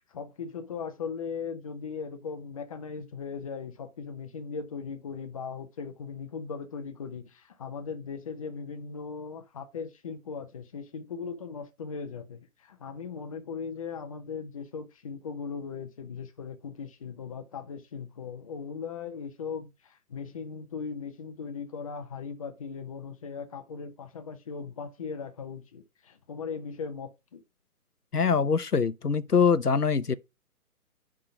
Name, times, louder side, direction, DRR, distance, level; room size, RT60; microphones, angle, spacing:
voice 1, 0.0-27.4, left 5 dB, 25° left, 0.8 m, -38 dB
voice 2, 28.1-30.1, left 6 dB, 90° left, 0.9 m, -23 dB
10.0 x 3.8 x 4.9 m
figure-of-eight pair, 140°, 45 cm